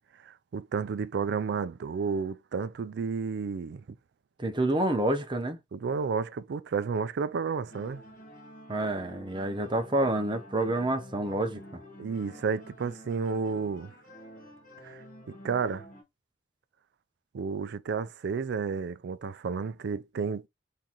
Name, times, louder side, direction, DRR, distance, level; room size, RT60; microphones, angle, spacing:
voice 1, 0.2-3.8 5.7-8.0 12.0-13.9 14.8-15.0 15.3-15.8 17.3-20.5, right 5 dB, 60° right, 0.4 m, -31 dB
voice 2, 4.4-5.6 8.7-11.6, right 1 dB, 25° right, 0.7 m, -28 dB
sound 1, 7.7-16.0, equal, 45° left, 1.5 m, -49 dB
3.8 x 3.7 x 2.9 m
head